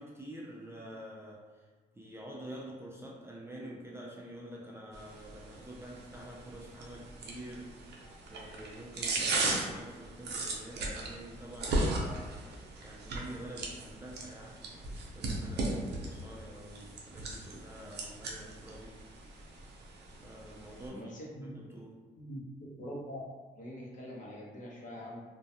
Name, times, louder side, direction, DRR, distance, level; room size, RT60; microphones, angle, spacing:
voice 1, 0.0-1.6 2.0-7.8 8.3-19.0 20.2-21.1 21.4-22.0, right 1 dB, 15° right, -3 dB, 0.3 m, -47 dB
sound 1, 4.9-20.9, right 2 dB, 70° right, 0.5 m, -37 dB
voice 2, 20.9-21.5 22.1-23.2 23.6-25.2, equal, 45° left, -4 dB, 0.7 m, -44 dB
2.2 x 2.2 x 2.7 m, 1.4 s
cardioid pair, 100°, 18 cm